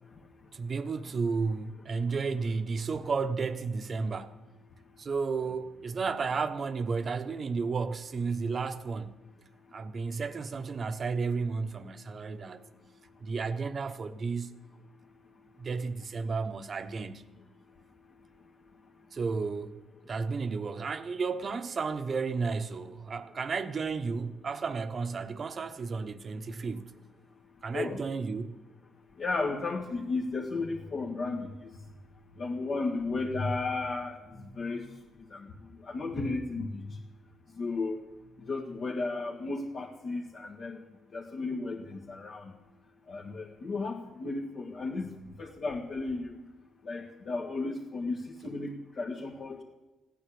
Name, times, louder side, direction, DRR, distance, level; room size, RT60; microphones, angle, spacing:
voice 1, 0.5-4.4 5.0-9.2 9.7-12.7 13.2-14.5 15.6-17.3 19.1-26.9 27.6-28.6, right 4 dB, 45° right, 1.0 m, -33 dB
voice 2, 29.2-31.7 32.4-35.0 35.3-35.5 35.8-37.0 37.6-38.0 38.4-40.8 41.1-42.5 43.1-45.1 45.4-46.4 46.8-49.6, left 3 dB, 50° left, 1.8 m, -34 dB
15.5 x 9.6 x 8.6 m
cardioid pair, 90°, 0 cm